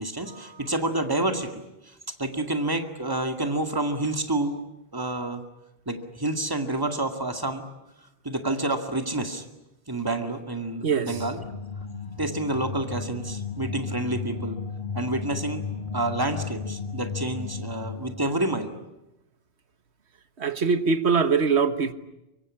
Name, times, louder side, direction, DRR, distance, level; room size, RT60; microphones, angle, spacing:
voice 1, 0.0-4.6 4.9-5.4 5.9-7.7 8.2-9.4 9.9-11.5 12.2-14.6 14.9-15.6 15.9-18.7, right 2 dB, 20° right, 2.2 m, -29 dB
sound 1, 11.0-18.4, left 5 dB, 50° left, 2.3 m, -34 dB
voice 2, 20.4-21.9, right 5 dB, 90° right, 1.6 m, -22 dB
24.5 x 23.5 x 9.9 m
omnidirectional pair, 1.1 m